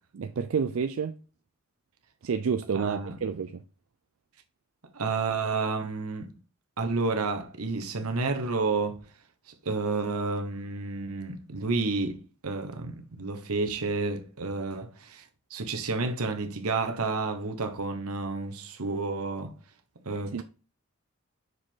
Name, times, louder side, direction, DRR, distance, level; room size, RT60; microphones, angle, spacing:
voice 1, 0.1-1.1 2.2-3.6 20.3-20.4, right 6 dB, 70° right, 0.4 m, -29 dB
voice 2, 2.7-3.2 4.9-6.3 6.8-9.0 9.6-15.2 15.5-19.5 20.0-20.4, right 3 dB, 90° right, 1.1 m, -30 dB
6.2 x 5.1 x 3.7 m
head